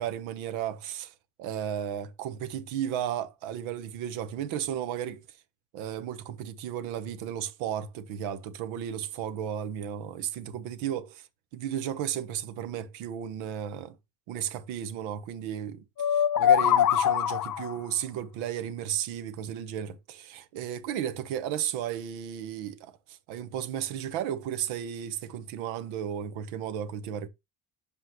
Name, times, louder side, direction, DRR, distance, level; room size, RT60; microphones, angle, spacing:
voice 1, 0.0-5.2 5.7-11.3 11.5-14.0 14.3-15.8 16.4-27.3, right 10 dB, 85° right, 1.1 m, -34 dB
sound 1, 16.0-17.8, left 10 dB, 45° left, 0.8 m, -23 dB
6.5 x 5.5 x 3.0 m
supercardioid pair, 75°, 47 cm